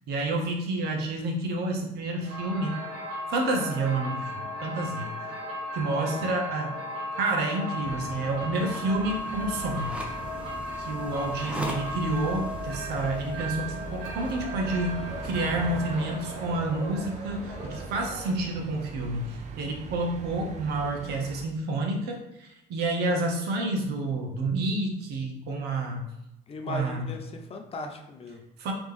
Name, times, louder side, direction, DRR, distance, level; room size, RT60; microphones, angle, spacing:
voice 1, 0.1-2.8 3.3-5.3 5.7-6.7 7.2-9.9 10.8-26.1 26.7-27.1 28.6-28.7, right 2 dB, 75° right, 2 dB, 0.8 m, -29 dB
sound 1, 2.2-18.6, left 1 dB, 90° right, 1.5 m, -36 dB
voice 2, 5.8-6.3 26.5-28.4, left 2 dB, 35° left, 4 dB, 0.5 m, -38 dB
sound 2, 7.8-21.5, right 5 dB, 45° right, 0.4 m, -41 dB
sound 3, 8.6-14.4, equal, 5° right, 0.7 m, -42 dB
3.4 x 3.0 x 3.5 m, 0.87 s
cardioid pair, 110°, 17 cm